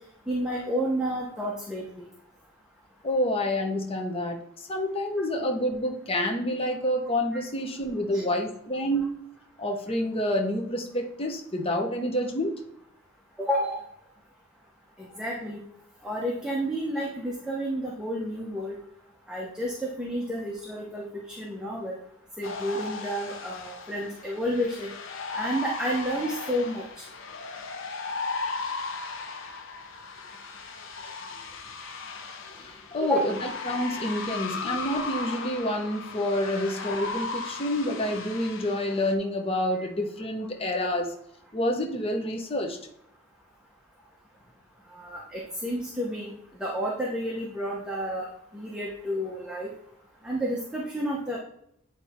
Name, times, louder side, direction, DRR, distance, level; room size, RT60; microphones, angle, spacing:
voice 1, 0.3-2.1 8.1-8.2 13.4-13.8 15.0-15.6 16.0-18.8 19.3-22.0 22.4-24.9 25.3-27.0 33.0-33.3 39.8-39.9 45.0-46.3 46.6-48.3 48.5-49.7 50.2-51.4, equal, 5° right, -4 dB, 1.0 m, -30 dB
voice 2, 3.0-9.1 9.6-12.6 32.6-41.1 41.5-42.8, left 1 dB, 30° left, 2 dB, 1.0 m, -28 dB
sound 1, 22.4-39.1, left 4 dB, 70° left, 0.8 m, -36 dB
8.9 x 3.5 x 4.3 m, 0.74 s
head